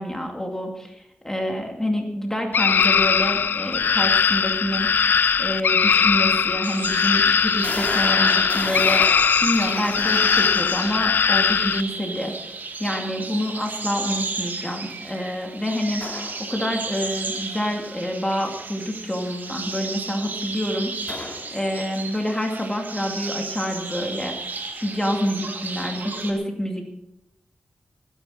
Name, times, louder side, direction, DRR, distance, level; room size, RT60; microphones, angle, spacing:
voice 1, 0.0-9.0 9.4-12.3 12.8-26.9, equal, 15° left, 2 dB, 2.4 m, -27 dB
sound 1, 2.5-11.8, left 6 dB, 85° left, 0.5 m, -20 dB
sound 2, 6.0-6.1 6.7-6.8 7.6-11.1 16.0-16.4 21.1-21.6, left 2 dB, 45° left, 2.5 m, -32 dB
sound 3, 6.6-26.3, right 3 dB, 65° right, 2.2 m, -34 dB
20.5 x 10.0 x 5.0 m, 0.86 s
wide cardioid pair, 85°, 3 cm